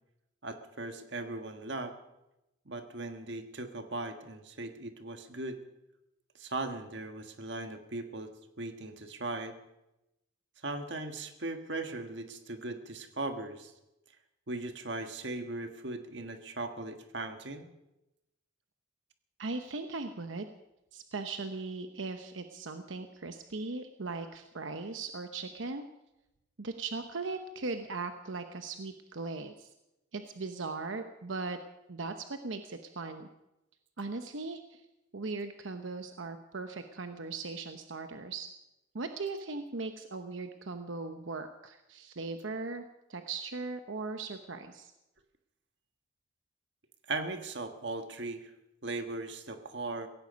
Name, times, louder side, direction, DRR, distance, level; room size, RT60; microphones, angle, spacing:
voice 1, 0.4-1.9 2.6-5.6 6.4-8.3 8.6-9.6 10.6-13.7 14.5-17.7 47.1-48.5 48.8-50.1, right 2 dB, 65° right, 7 dB, 1.5 m, -38 dB
voice 2, 19.4-20.5 20.9-25.9 26.6-29.7 30.1-31.6 31.9-33.3 34.0-34.8 35.1-38.5 38.9-42.8 43.1-44.9, right 3 dB, 90° right, 7 dB, 0.9 m, -38 dB
17.0 x 16.5 x 5.3 m, 0.92 s
head